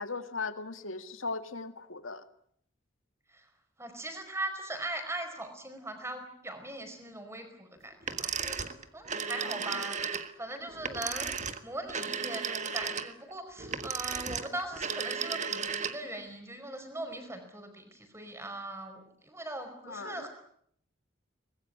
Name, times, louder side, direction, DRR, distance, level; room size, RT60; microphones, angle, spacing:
voice 1, 0.0-2.2 9.4-9.6 9.9-10.0 19.9-20.3, left 4 dB, 85° left, 10 dB, 2.0 m, -38 dB
voice 2, 3.8-20.3, right 1 dB, 15° right, 7 dB, 4.9 m, -40 dB
sound 1, 8.0-16.2, right 6 dB, 35° right, 1.6 m, -35 dB
24.5 x 20.5 x 9.5 m, 0.69 s
head